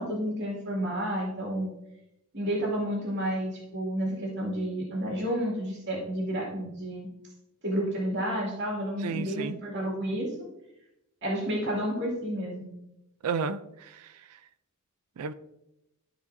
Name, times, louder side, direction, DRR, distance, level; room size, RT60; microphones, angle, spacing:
voice 1, 0.0-1.7 2.3-7.1 7.6-10.3 11.2-12.7, equal, 55° right, -4 dB, 2.3 m, -30 dB
voice 2, 9.0-9.6 13.2-14.4 15.2-15.3, right 5 dB, 80° right, 12 dB, 0.4 m, -33 dB
13.5 x 4.9 x 2.6 m, 0.88 s
head